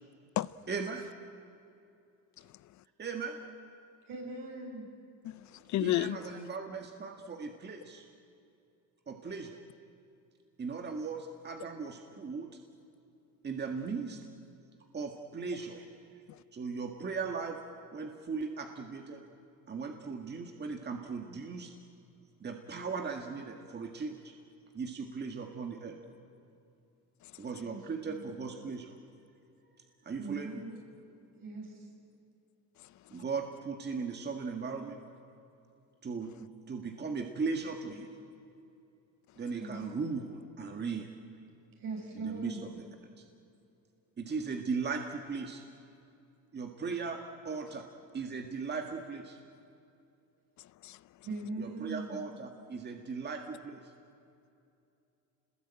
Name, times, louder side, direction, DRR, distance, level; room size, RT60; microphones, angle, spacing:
voice 1, 0.7-1.1 3.0-3.5 5.8-8.1 9.1-9.6 10.6-12.5 13.4-14.2 14.9-15.8 16.1-16.2 16.5-19.3 19.7-21.7 22.4-24.3 24.7-26.0 27.4-29.0 30.0-30.6 33.1-35.0 36.0-38.1 39.4-41.1 42.2-42.9 43.2-43.3 44.2-45.6 46.5-49.4 51.6-53.9, right 5 dB, 30° right, 1.8 m, -38 dB
voice 2, 4.1-4.9 27.6-27.8 28.0-28.3 30.2-30.8 31.4-31.9 39.6-39.8 41.8-42.6 51.2-52.2, right 3 dB, 65° right, 7.7 m, -40 dB
voice 3, 5.2-6.2 16.3-16.4 27.2-27.3 50.8-51.0, left 15 dB, 55° left, 0.5 m, -32 dB
28.0 x 20.5 x 9.0 m
cardioid pair, 120°, 36 cm